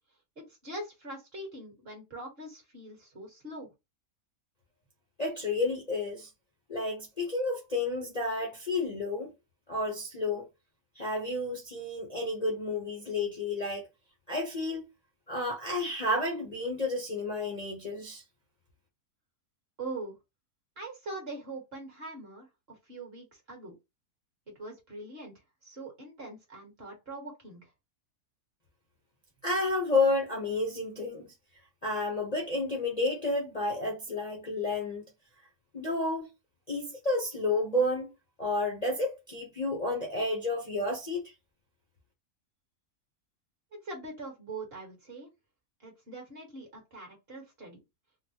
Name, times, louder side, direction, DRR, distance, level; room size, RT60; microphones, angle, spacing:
voice 1, 0.4-3.7 19.8-20.1 20.8-23.8 24.6-25.3 25.6-27.7 43.8-45.3 45.8-47.8, right 2 dB, 40° right, 1.5 m, -42 dB
voice 2, 5.2-6.3 6.7-9.3 9.7-10.5 11.0-13.8 14.3-14.9 15.3-18.2 29.4-31.3 31.8-35.0 35.7-36.3 36.7-38.1 38.4-41.3, left 2 dB, 35° left, 0.7 m, -31 dB
3.9 x 2.1 x 2.8 m
omnidirectional pair, 1.6 m